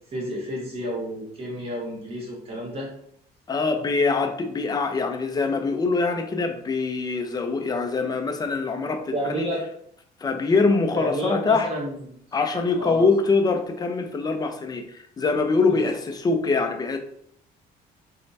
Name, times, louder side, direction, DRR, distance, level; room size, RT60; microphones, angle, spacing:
voice 1, 0.1-2.9 9.1-9.6 11.0-12.2 12.8-13.0 15.7-15.8, equal, 35° right, -4 dB, 1.2 m, -30 dB
voice 2, 3.5-9.5 10.2-11.7 12.3-17.0, left 4 dB, 25° left, 6 dB, 0.4 m, -24 dB
3.1 x 2.1 x 2.6 m, 0.68 s
cardioid pair, 110°, 17 cm